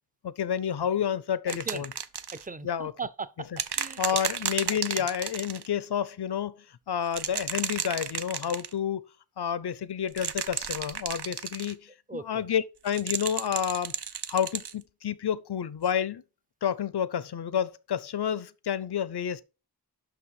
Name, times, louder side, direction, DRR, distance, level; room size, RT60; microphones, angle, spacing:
voice 1, 0.2-1.9 2.6-2.9 4.0-9.1 9.4-13.9 14.3-16.2 16.6-19.4, left 8 dB, 90° left, 0.5 m, -30 dB
voice 2, 1.5-1.8 2.3-3.5 3.8-4.0 4.7-5.1 12.1-12.4, right 4 dB, 20° right, 0.5 m, -38 dB
sound 1, 1.5-2.4 3.6-5.7 7.1-8.7 10.1-11.7 12.9-14.7 15.9-16.0, right 7 dB, 90° right, 0.6 m, -33 dB
6.0 x 5.9 x 4.7 m
wide cardioid pair, 55°, 38 cm